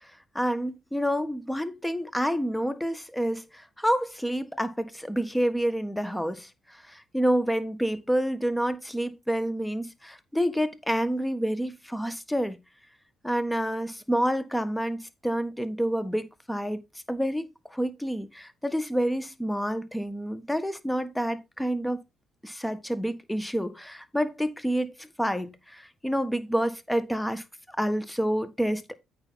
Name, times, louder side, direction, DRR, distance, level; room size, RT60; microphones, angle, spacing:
voice 1, 0.3-12.6 13.2-16.8 17.1-22.0 22.4-28.9, equal, 5° left, 1.4 m, -28 dB
8.8 x 5.8 x 4.0 m
supercardioid pair, 60°, 0 cm